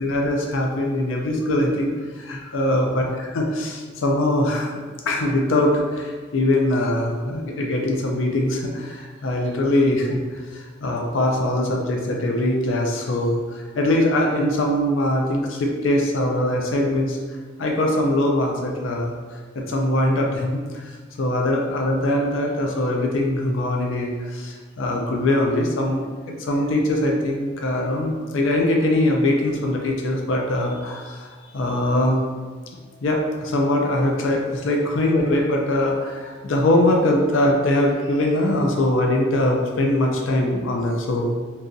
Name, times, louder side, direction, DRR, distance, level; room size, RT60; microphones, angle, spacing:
voice 1, 0.0-4.7 5.1-10.2 10.5-17.2 17.6-20.9 21.2-26.1 26.4-32.2 33.0-41.3, left 1 dB, 80° left, 1 dB, 0.5 m, -22 dB
3.7 x 2.8 x 2.6 m, 1.5 s
head